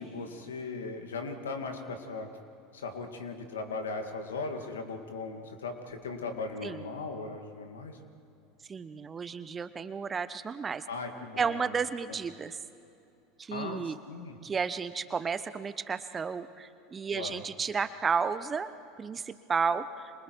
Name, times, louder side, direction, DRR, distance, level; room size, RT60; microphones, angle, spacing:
voice 1, 0.0-2.3 2.7-8.0 10.9-11.7 12.1-12.2 13.5-14.4 17.1-17.4, left 3 dB, 85° left, 6 dB, 2.1 m, -38 dB
voice 2, 8.7-10.8 11.4-12.6 13.4-14.0 14.4-18.7 19.0-20.1, right 5 dB, 25° right, 12 dB, 1.0 m, -32 dB
29.0 x 26.5 x 4.6 m, 2.6 s
hypercardioid pair, 80°, 0 cm